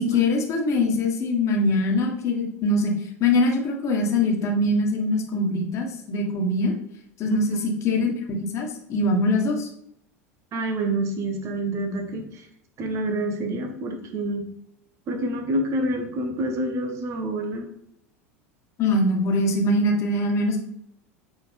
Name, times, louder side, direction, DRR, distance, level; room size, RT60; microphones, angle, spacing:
voice 1, 0.0-6.7 7.2-7.6 7.8-9.7 18.8-20.6, left 2 dB, 40° left, 1 dB, 1.7 m, -23 dB
voice 2, 7.2-7.7 10.5-12.5 12.8-14.5 15.1-17.7, right 1 dB, 40° right, 5 dB, 1.3 m, -27 dB
7.6 x 4.4 x 3.5 m, 0.72 s
figure-of-eight pair, 80°, 8 cm